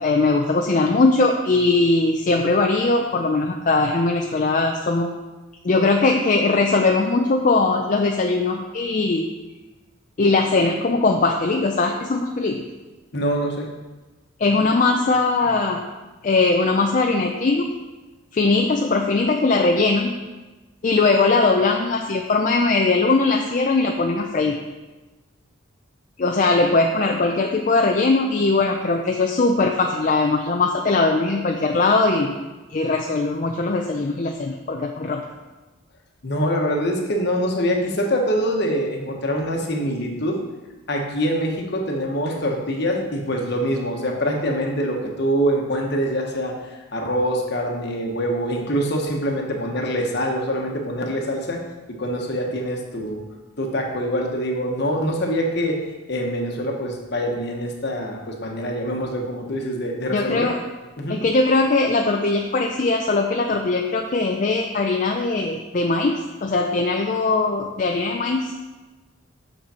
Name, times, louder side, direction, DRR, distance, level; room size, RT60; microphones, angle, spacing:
voice 1, 0.0-5.1 5.6-9.3 10.2-12.6 14.4-15.8 16.2-17.7 18.3-20.1 20.8-24.6 26.2-32.3 32.7-35.2 60.1-60.6 61.1-68.5, left 3 dB, 40° left, 2 dB, 0.4 m, -20 dB
voice 2, 13.1-13.7 36.2-40.4 40.9-46.5 46.9-51.6 52.0-53.2 53.6-55.8 56.1-60.5 61.0-61.2, equal, 55° left, 1 dB, 1.1 m, -24 dB
6.6 x 5.9 x 4.3 m, 1.2 s
head